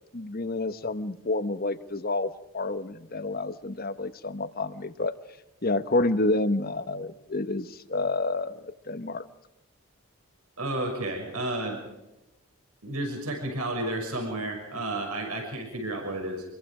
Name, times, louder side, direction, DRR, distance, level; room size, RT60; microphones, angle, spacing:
voice 1, 0.1-5.1 5.6-9.2, left 2 dB, 40° left, 12 dB, 1.2 m, -29 dB
voice 2, 10.6-11.8 12.8-16.4, right 1 dB, 85° right, 2 dB, 6.3 m, -31 dB
27.0 x 23.0 x 5.0 m, 0.96 s
head